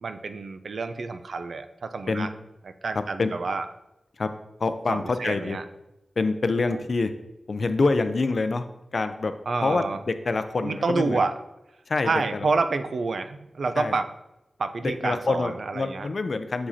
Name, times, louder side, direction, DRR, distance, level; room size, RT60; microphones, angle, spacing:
voice 1, 0.0-2.3 2.8-3.7 4.9-5.6 9.5-10.0 10.6-11.3 12.0-14.1 14.6-16.1, right 4 dB, 75° right, 9 dB, 0.4 m, -28 dB
voice 2, 2.9-3.3 4.2-4.3 4.6-5.6 6.2-7.1 7.5-8.7 8.9-9.3 9.6-11.2 11.9-12.5 13.8-13.9 14.8-16.7, left 3 dB, 55° left, 9 dB, 0.4 m, -26 dB
7.1 x 4.9 x 2.7 m, 0.92 s
wide cardioid pair, 115°, 0 cm